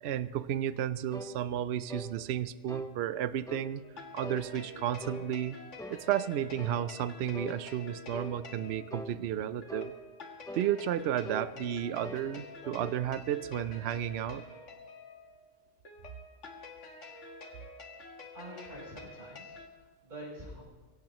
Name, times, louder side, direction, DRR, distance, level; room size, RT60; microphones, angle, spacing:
voice 1, 0.0-3.8 4.1-5.6 5.9-9.9 10.5-14.4, right 10 dB, 65° right, 14 dB, 0.8 m, -33 dB
sound 1, 1.1-1.4 1.9-2.1 2.7-2.9 3.5-3.7 4.2-4.5 5.0-5.3 5.8-6.0 6.6-6.8 7.3-7.6 8.1-8.4 8.9-9.1 9.7-9.9 10.4-10.7 11.2-11.5 12.0-12.3 12.6-13.1, equal, 5° left, 0.7 m, -42 dB
sound 2, 3.8-19.7, left 3 dB, 70° left, 1.8 m, -49 dB
voice 2, 18.3-20.6, equal, 40° right, -6 dB, 5.6 m, -46 dB
23.5 x 16.5 x 3.0 m, 1.4 s
omnidirectional pair, 1.3 m